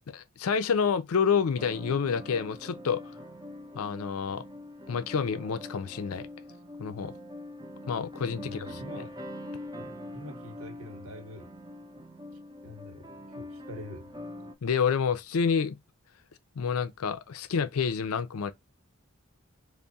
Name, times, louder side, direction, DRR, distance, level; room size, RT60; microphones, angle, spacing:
voice 1, 0.1-3.0 3.7-4.4 4.9-6.3 6.8-7.1 7.9-8.8 14.6-15.8 16.6-18.5, left 6 dB, 85° left, 0.5 m, -28 dB
sound 1, 1.6-14.5, left 1 dB, 20° right, 0.5 m, -43 dB
voice 2, 8.4-9.2 9.8-11.5 12.6-14.2, left 1 dB, 75° right, 0.9 m, -45 dB
3.4 x 2.1 x 4.0 m
head